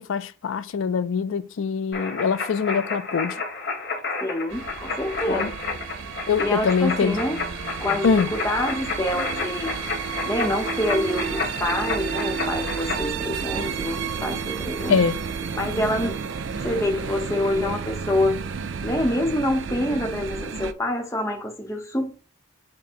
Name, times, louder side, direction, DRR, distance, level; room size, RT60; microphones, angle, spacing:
voice 1, 0.0-3.4 5.3-5.5 6.3-7.2 8.0-8.3 14.9-15.2, left 6 dB, 75° left, 0.4 m, -23 dB
sound 1, 1.9-13.0, left 3 dB, 55° left, 1.3 m, -31 dB
voice 2, 4.2-5.5 6.4-7.4 7.8-9.8 10.2-15.0 15.5-16.2 16.6-18.4 18.8-22.2, left 1 dB, 15° left, 0.8 m, -26 dB
sound 2, 4.5-20.7, right 6 dB, 65° right, 0.4 m, -31 dB
6.0 x 2.1 x 4.2 m
head